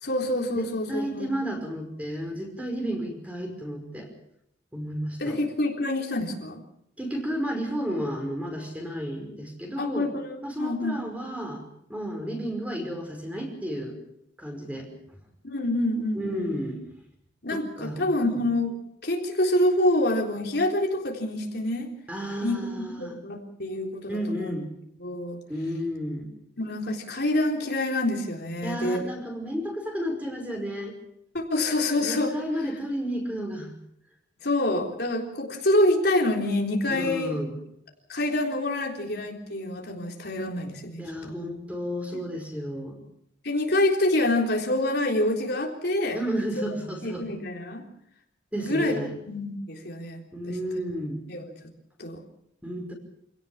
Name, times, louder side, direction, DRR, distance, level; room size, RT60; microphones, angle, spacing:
voice 1, 0.0-1.3 5.2-6.6 9.8-11.0 15.4-16.5 17.4-18.8 19.0-21.9 22.4-24.6 25.0-25.4 26.6-29.0 31.3-32.4 34.4-37.5 38.1-41.3 43.4-46.2 47.0-47.8 48.6-49.0 49.3-50.2 51.3-51.4 52.0-52.2, left 1 dB, 55° left, 1 dB, 3.8 m, -26 dB
voice 2, 0.6-4.1 4.7-5.4 7.0-10.1 10.4-11.6 11.9-14.0 14.4-15.2 16.1-16.8 17.5-18.4 22.1-23.2 24.1-24.7 25.5-26.3 28.6-31.0 32.0-33.7 36.9-37.6 41.0-43.0 46.1-47.3 48.5-49.1 50.3-51.2 52.6-52.9, equal, 5° right, 3 dB, 5.4 m, -32 dB
27.0 x 18.0 x 7.3 m, 0.76 s
head